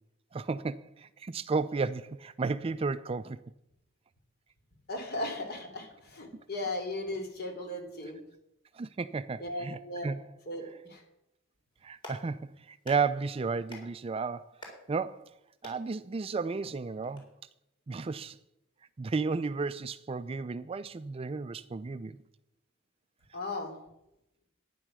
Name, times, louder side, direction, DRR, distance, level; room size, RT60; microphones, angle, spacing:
voice 1, 0.3-3.4 8.7-10.2 11.8-14.5 14.9-15.3 15.6-17.3 17.9-18.4 19.0-22.2, right 4 dB, 30° right, 0.4 m, -33 dB
voice 2, 4.9-8.2 9.4-10.1 10.5-11.0 23.3-23.8, left 1 dB, 50° left, 3.1 m, -37 dB
Clapping, 11.7-17.2, left 1 dB, 25° left, 3.7 m, -52 dB
12.0 x 10.0 x 6.2 m
head